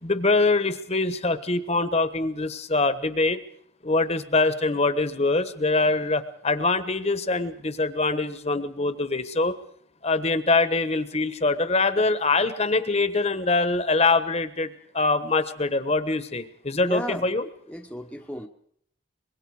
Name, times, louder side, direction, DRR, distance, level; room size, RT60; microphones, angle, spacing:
voice 1, 0.0-3.4 3.8-9.5 10.0-17.5, left 3 dB, 30° left, 12 dB, 1.2 m, -24 dB
voice 2, 16.8-17.3 17.7-18.5, equal, 5° left, 3 dB, 1.0 m, -34 dB
24.5 x 22.0 x 4.9 m, 0.66 s
head